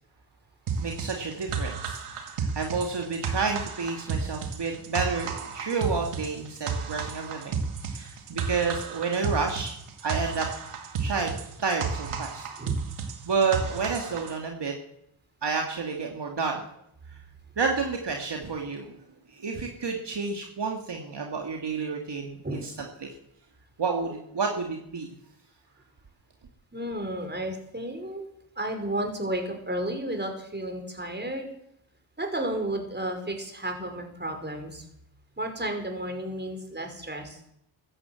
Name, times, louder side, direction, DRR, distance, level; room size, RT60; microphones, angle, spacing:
sound 1, 0.7-14.4, right 5 dB, 80° right, 2.3 m, -33 dB
voice 1, 0.8-7.6 7.9-9.7 10.0-10.5 11.0-11.3 11.6-12.5 13.2-14.7 15.4-16.6 17.6-18.9 19.3-23.1 23.8-25.1, right 4 dB, 55° right, 1 dB, 2.5 m, -30 dB
voice 2, 26.7-28.2 28.6-31.5 32.2-34.8 35.4-37.4, right 1 dB, 20° right, 4 dB, 5.2 m, -32 dB
15.0 x 11.0 x 7.9 m, 0.75 s
supercardioid pair, 50°, 50 cm